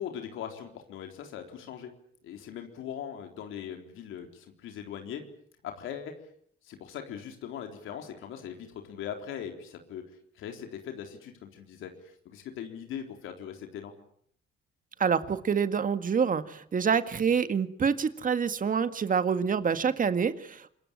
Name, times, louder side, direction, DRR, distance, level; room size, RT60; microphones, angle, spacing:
voice 1, 0.0-1.9 2.2-5.2 5.6-6.1 6.6-10.0 10.4-13.9, left 9 dB, 85° left, 4 dB, 3.9 m, -40 dB
voice 2, 15.0-20.7, right 6 dB, 45° right, 11 dB, 1.9 m, -27 dB
26.5 x 22.0 x 8.9 m, 0.64 s
cardioid pair, 90°, 20 cm